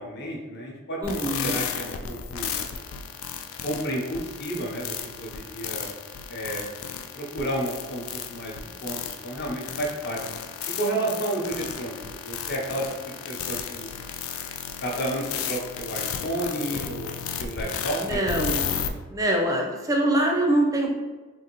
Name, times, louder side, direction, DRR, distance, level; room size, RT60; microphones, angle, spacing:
voice 1, 0.0-2.6 3.6-4.9 5.2-5.9 6.3-6.7 7.1-10.2 10.7-13.9 14.8-18.2, right 1 dB, 50° left, -2 dB, 0.7 m, -31 dB
sound 1, 1.0-18.9, left 7 dB, 70° left, 0.3 m, -33 dB
voice 2, 1.0-1.5 18.0-18.6 19.1-20.9, right 1 dB, 15° right, 0 dB, 0.4 m, -24 dB
3.7 x 2.6 x 3.0 m, 1.3 s
head